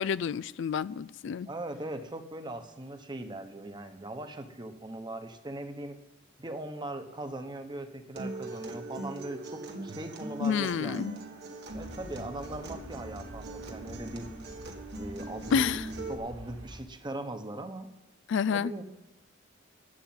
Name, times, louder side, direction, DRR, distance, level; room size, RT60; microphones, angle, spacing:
voice 1, 0.0-1.5 10.4-11.2 15.5-15.8 18.3-18.7, left 6 dB, 65° left, 0.4 m, -29 dB
voice 2, 1.5-6.0 6.4-11.2 11.7-14.3 15.0-15.7 16.1-17.9 18.5-18.8, right 1 dB, 25° right, 1.1 m, -40 dB
Acoustic guitar, 8.2-16.1, right 2 dB, 55° right, 1.6 m, -41 dB
sound 1, 11.7-16.8, equal, 80° right, 2.0 m, -47 dB
11.5 x 8.2 x 9.5 m
head